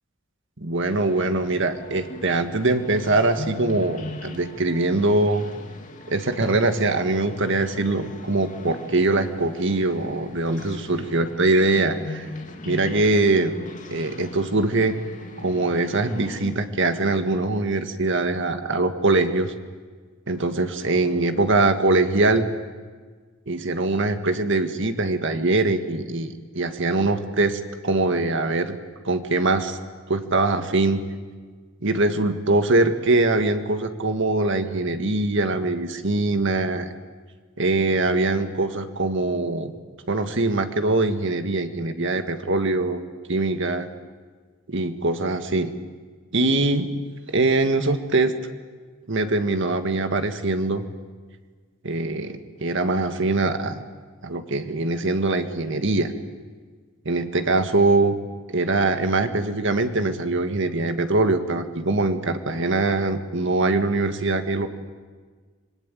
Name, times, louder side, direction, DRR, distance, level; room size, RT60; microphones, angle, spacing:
voice 1, 0.6-5.5 6.1-12.3 12.7-13.6 13.9-15.0 15.4-19.5 20.3-22.5 23.5-28.8 29.0-29.8 30.1-31.0 31.8-36.9 37.6-39.7 40.1-43.0 43.3-43.9 44.7-45.7 46.3-47.0 47.3-48.3 49.1-50.8 51.8-53.8 54.2-56.1 57.1-58.2 58.5-64.7, right 2 dB, 60° right, 8 dB, 1.8 m, -22 dB
sound 1, 0.8-16.5, left 2 dB, 40° left, 2.5 m, -40 dB
26.0 x 21.0 x 9.2 m, 1.5 s
head